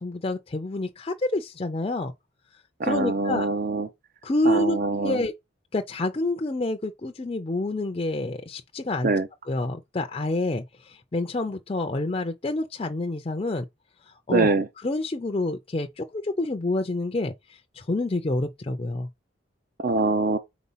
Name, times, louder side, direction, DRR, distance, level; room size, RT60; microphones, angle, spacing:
voice 1, 0.0-2.1 2.8-3.5 4.2-5.3 5.7-9.1 9.5-13.7 14.3-14.5 14.8-17.3 17.8-19.1, left 2 dB, 30° left, 0.4 m, -28 dB
voice 2, 2.8-3.9 4.5-5.2 9.0-9.3 14.3-14.7 19.8-20.4, right 3 dB, 45° right, 0.5 m, -24 dB
4.2 x 4.1 x 5.5 m
head